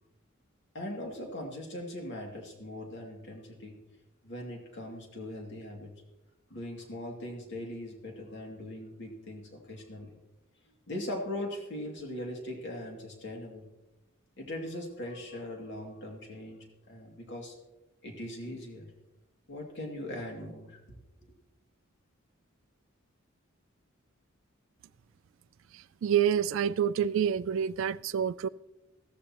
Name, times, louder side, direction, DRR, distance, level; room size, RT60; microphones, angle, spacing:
voice 1, 0.7-3.8 4.2-5.9 6.5-10.2 10.9-13.7 14.4-16.6 16.9-17.6 18.0-18.9 19.5-21.3, left 1 dB, 60° left, 2.5 m, -40 dB
voice 2, 25.7-28.5, right 8 dB, 70° right, 0.3 m, -28 dB
15.0 x 13.5 x 3.0 m
head